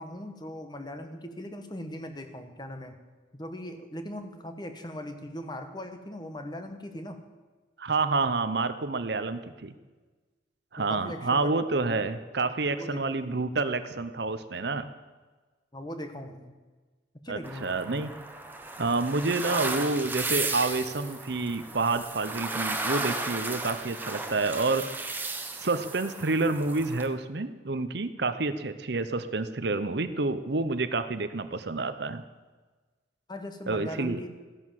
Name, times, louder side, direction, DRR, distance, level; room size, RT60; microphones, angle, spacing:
voice 1, 0.0-2.9 3.3-7.2 10.8-12.0 12.7-13.1 15.7-16.5 17.2-17.9 33.3-34.3, equal, 20° left, 7 dB, 1.3 m, -39 dB
voice 2, 7.8-9.7 10.7-14.9 17.3-18.1 18.8-24.9 25.5-32.2 33.7-34.2, right 3 dB, 60° right, 11 dB, 0.8 m, -28 dB
sound 1, 17.4-27.1, right 3 dB, 10° right, 1.2 m, -35 dB
15.0 x 11.0 x 7.5 m, 1.3 s
head